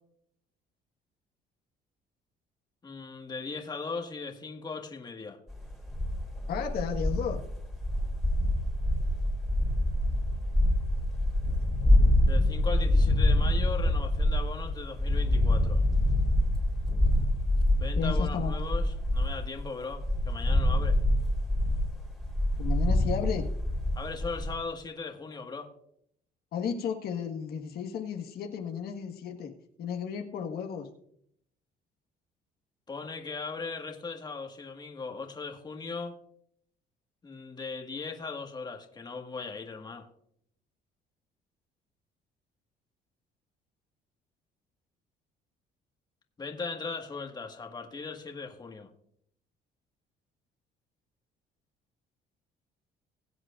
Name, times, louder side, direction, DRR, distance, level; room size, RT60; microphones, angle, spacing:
voice 1, 2.8-5.4 12.3-15.8 17.8-21.0 24.0-25.7 32.9-36.2 37.2-40.1 46.4-48.9, left 4 dB, 25° left, 3 dB, 1.7 m, -38 dB
sound 1, 5.5-19.6 19.9-24.5, left 1 dB, ahead, 2.9 m, -26 dB
voice 2, 6.5-7.4 17.9-18.7 22.6-23.5 26.5-29.5 29.8-30.9, left 7 dB, 65° left, 2 dB, 1.6 m, -33 dB
21.5 x 7.9 x 2.5 m, 0.69 s
cardioid pair, 110°, 17 cm